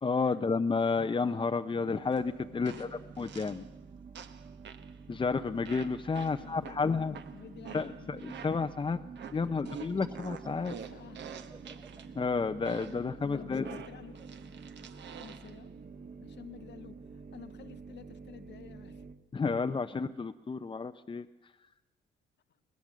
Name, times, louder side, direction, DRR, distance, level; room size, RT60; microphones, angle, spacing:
voice 1, 0.0-3.7 5.1-7.2 7.7-9.0 9.3-10.8 12.1-13.8 19.3-21.7, left 4 dB, 25° left, 7 dB, 0.7 m, -31 dB
sound 1, 1.1-19.2, right 4 dB, 45° right, 1.8 m, -49 dB
sound 2, 2.1-2.2 2.6-3.7 4.1-4.9 5.6-8.8 9.1-12.1 12.6-13.1 13.6-15.6, right 7 dB, 65° right, 1.4 m, -47 dB
voice 2, 2.5-3.1 6.2-8.1 9.4-9.5 10.9-11.3 12.0-12.1 13.2-14.2 15.2-15.7 16.2-17.0 17.3-19.0, left 8 dB, 60° left, 10 dB, 1.1 m, -51 dB
sound 3, 10.0-15.3, right 3 dB, 15° right, 1.6 m, -56 dB
23.0 x 19.0 x 7.4 m, 1.0 s
cardioid pair, 90°, 20 cm